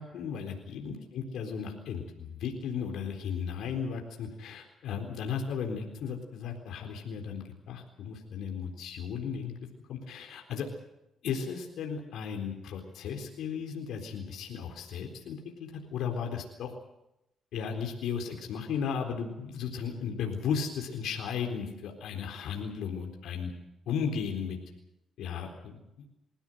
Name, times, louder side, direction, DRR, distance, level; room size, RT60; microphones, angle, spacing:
voice 1, 0.0-9.5 9.9-10.7 11.2-16.7 17.5-23.5 23.9-24.6 25.2-25.7, left 6 dB, 80° left, 3 dB, 4.0 m, -35 dB
27.5 x 16.0 x 7.9 m, 0.86 s
cardioid pair, 90°, 0 cm